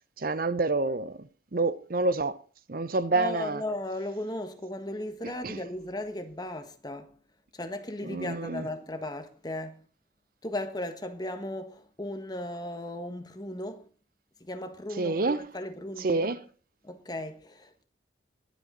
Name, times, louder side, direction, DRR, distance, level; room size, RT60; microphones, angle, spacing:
voice 1, 0.2-2.4 2.7-3.6 5.4-5.6 8.0-8.7 15.0-15.5 16.0-16.4, right 3 dB, 50° right, 0.7 m, -28 dB
voice 2, 3.1-7.2 7.5-9.8 10.4-13.9 14.4-16.3 16.8-17.8, left 1 dB, 20° left, 1.5 m, -36 dB
21.5 x 8.3 x 3.9 m
head